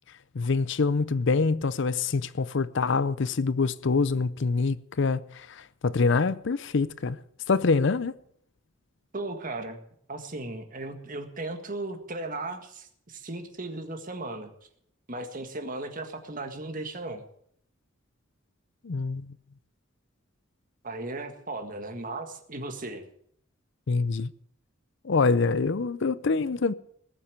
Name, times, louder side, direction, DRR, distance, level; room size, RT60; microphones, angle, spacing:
voice 1, 0.3-7.2 7.5-8.1 18.8-19.3 23.9-24.3 25.0-26.7, left 4 dB, 60° left, 0.6 m, -25 dB
voice 2, 9.1-9.8 10.1-14.5 15.1-17.3 20.8-23.0, right 2 dB, 40° right, 1.8 m, -36 dB
20.0 x 7.3 x 8.1 m
head